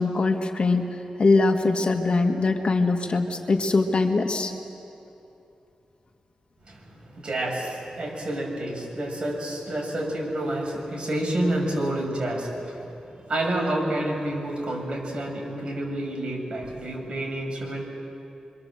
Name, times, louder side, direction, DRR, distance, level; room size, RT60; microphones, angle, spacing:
voice 1, 0.0-4.5, left 3 dB, 50° left, 4 dB, 1.9 m, -22 dB
voice 2, 6.7-17.8, right 1 dB, 45° right, -1 dB, 7.6 m, -29 dB
28.5 x 24.0 x 7.8 m, 2.9 s
cardioid pair, 70°, 2 cm